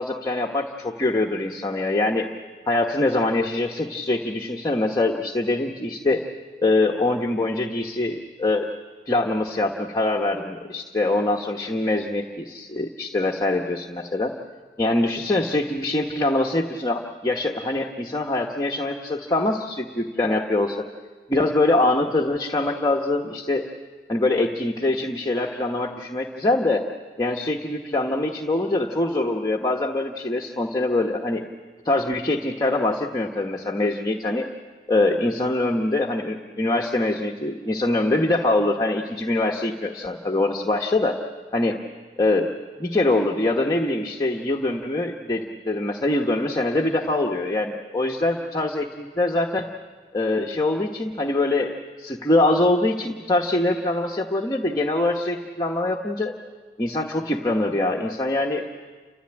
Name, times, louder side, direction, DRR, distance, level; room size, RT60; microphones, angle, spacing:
voice 1, 0.0-2.3 2.7-6.2 6.6-8.7 9.1-14.3 14.8-20.8 21.3-23.7 24.1-26.8 27.2-31.4 31.8-34.5 34.9-41.2 41.5-41.8 42.2-42.5 42.8-49.7 50.1-56.3 56.8-58.6, left 2 dB, 20° left, 0 dB, 1.1 m, -23 dB
29.5 x 14.5 x 8.8 m, 1.5 s
head